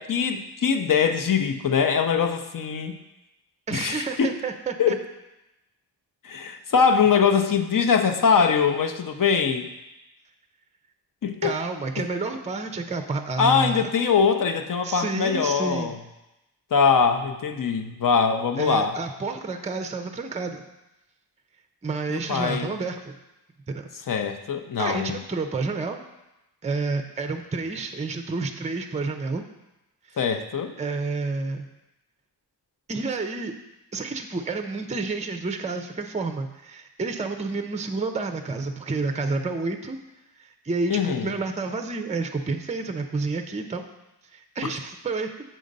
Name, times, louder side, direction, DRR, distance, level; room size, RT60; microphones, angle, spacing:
voice 1, 0.0-3.0 3.7-4.3 4.8-5.0 6.2-9.7 11.2-11.5 13.4-16.0 16.7-19.0 22.1-22.7 24.1-25.2 30.2-30.7 40.9-41.3, left 6 dB, 50° left, 7 dB, 0.7 m, -22 dB
voice 2, 3.7-5.0 11.4-13.9 14.8-16.0 18.6-20.6 21.8-23.1 23.7-23.9 24.8-26.0 26.6-29.4 30.1-30.2 30.8-31.7 32.9-33.5 33.9-40.0 40.4-43.8 44.3-45.3, right 3 dB, 15° right, 6 dB, 0.5 m, -29 dB
7.6 x 3.8 x 5.2 m, 0.96 s
wide cardioid pair, 75°, 42 cm